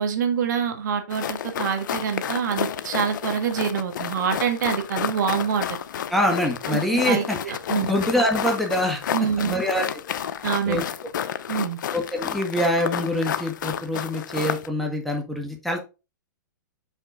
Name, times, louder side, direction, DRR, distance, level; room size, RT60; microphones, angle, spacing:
voice 1, 0.0-5.7 6.7-7.9 9.1-9.6 10.4-10.9 11.5-11.8, right 7 dB, 65° right, 1.6 m, -26 dB
sound 1, 1.1-14.7, left 9 dB, 70° left, 0.7 m, -31 dB
voice 2, 6.1-7.4 7.7-9.0 9.4-9.9 10.7-10.8 11.9-15.8, left 1 dB, ahead, 1.6 m, -24 dB
5.8 x 5.7 x 3.6 m
hypercardioid pair, 130°, 11 cm